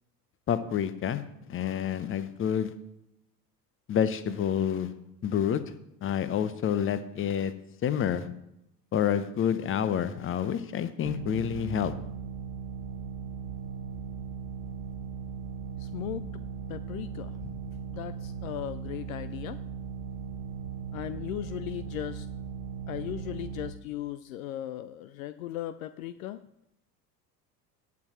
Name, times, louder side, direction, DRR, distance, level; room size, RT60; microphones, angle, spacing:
voice 1, 0.5-1.2 1.5-2.7 3.9-4.9 5.2-5.6 6.0-7.5 7.8-8.3 8.9-11.9, left 8 dB, 25° left, 14 dB, 0.9 m, -28 dB
sound 1, 11.0-23.7, right 6 dB, 55° right, 1.0 m, -38 dB
voice 2, 15.8-16.3 16.7-17.6 17.9-19.6 20.9-22.3 22.9-26.4, left 13 dB, 55° left, 15 dB, 0.6 m, -37 dB
18.5 x 8.2 x 3.1 m, 0.81 s
figure-of-eight pair, 70°, 49 cm